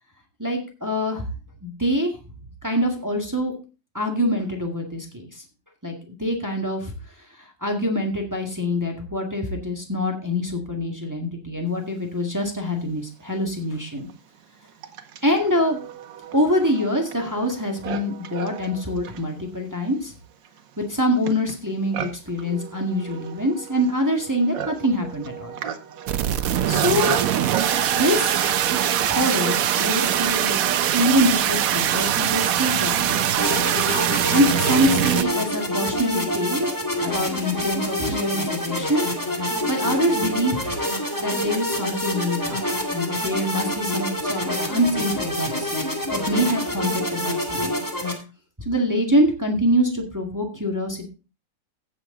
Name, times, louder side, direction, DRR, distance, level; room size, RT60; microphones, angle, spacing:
voice 1, 0.4-1.3 1.6-2.1 2.6-3.5 3.9-5.4 5.8-6.9 7.4-14.1 15.2-15.8 16.3-20.1 20.8-25.6 26.7-27.2 28.0-28.5 29.0-30.6 30.9-33.4 34.3-36.7 37.0-39.1 39.7-40.7 41.2-42.6 42.9-45.7 46.1-47.8 48.6-51.1, equal, 10° right, 2 dB, 1.7 m, -24 dB
Livestock farm animals working animals, 12.8-12.9 13.7-29.6, right 8 dB, 90° right, 1.7 m, -36 dB
sound 1, 26.1-35.2, right 10 dB, 65° right, 0.9 m, -22 dB
sound 2, 33.4-48.1, equal, 10° left, 1.9 m, -27 dB
15.5 x 6.4 x 3.8 m, 0.31 s
omnidirectional pair, 2.0 m